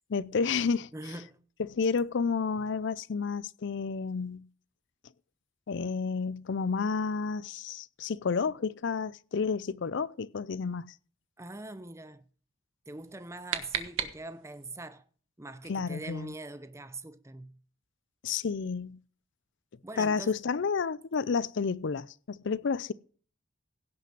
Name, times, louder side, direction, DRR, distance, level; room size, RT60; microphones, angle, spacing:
voice 1, 0.1-0.9 1.6-4.4 5.7-10.9 15.7-16.3 18.2-19.0 20.0-22.9, left 5 dB, 60° left, 0.5 m, -30 dB
voice 2, 0.9-1.4 11.4-12.2 12.9-15.0 15.4-17.6 19.8-20.3, right 2 dB, 15° right, 0.7 m, -43 dB
sound 1, 13.0-14.7, right 8 dB, 65° right, 1.3 m, -36 dB
16.5 x 5.8 x 6.0 m
head